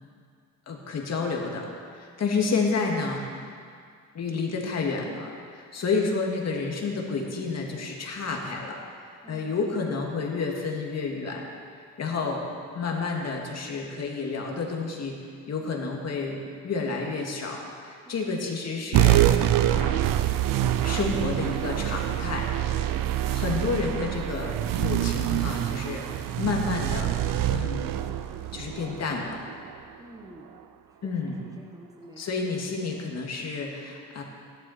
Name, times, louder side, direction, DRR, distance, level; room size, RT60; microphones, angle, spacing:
voice 1, 0.7-1.7 1.9-3.4 4.1-8.8 9.3-11.5 12.0-15.2 15.5-20.0 20.8-22.5 23.2-27.9 28.5-29.4 31.0-31.5 32.2-34.2, left 4 dB, 50° left, 0 dB, 2.2 m, -30 dB
voice 2, 9.2-10.0 18.1-18.4 30.0-30.5 31.0-32.5, right 1 dB, 10° right, 0 dB, 1.2 m, -49 dB
sound 1, 18.9-29.8, right 13 dB, 70° right, 0.6 m, -25 dB
17.0 x 11.5 x 4.4 m, 2.2 s
cardioid pair, 120°, 34 cm